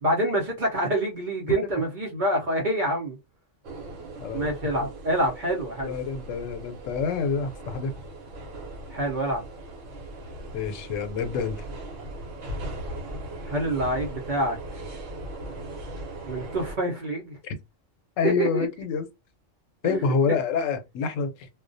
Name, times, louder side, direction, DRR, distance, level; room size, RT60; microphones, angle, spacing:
voice 1, 0.0-3.2 4.3-6.0 8.9-9.4 13.4-14.6 16.3-17.4 18.2-18.7 19.8-20.0, right 1 dB, 50° right, 0.7 m, -26 dB
sound 1, 3.6-16.8, right 1 dB, 75° right, 1.0 m, -39 dB
voice 2, 4.2-4.5 4.8-4.9 5.8-8.0 10.5-11.6 17.4-17.5 18.2-19.1 19.8-21.5, left 5 dB, 85° left, 0.9 m, -27 dB
2.3 x 2.1 x 2.5 m
omnidirectional pair, 1.3 m